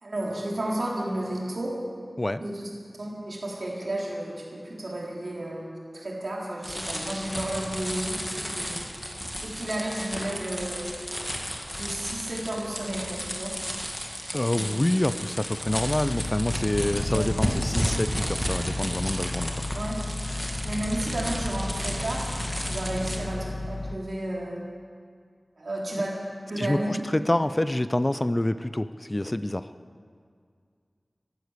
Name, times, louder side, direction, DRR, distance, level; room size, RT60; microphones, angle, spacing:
voice 1, 0.0-1.7 2.4-2.7 3.0-8.8 9.4-10.9 11.8-13.5 14.5-14.7 17.1-17.4 19.7-20.0 20.6-24.7 25.6-26.2 26.5-26.9, right 1 dB, 70° right, -3 dB, 3.5 m, -32 dB
sound 1, 6.6-23.2, equal, 10° left, 1.9 m, -33 dB
voice 2, 14.3-19.5 26.6-29.7, left 1 dB, 25° left, 13 dB, 0.4 m, -27 dB
sound 2, 15.6-24.0, left 2 dB, 60° left, 0.7 m, -34 dB
13.5 x 11.5 x 8.1 m, 2.1 s
wide cardioid pair, 65°, 0 cm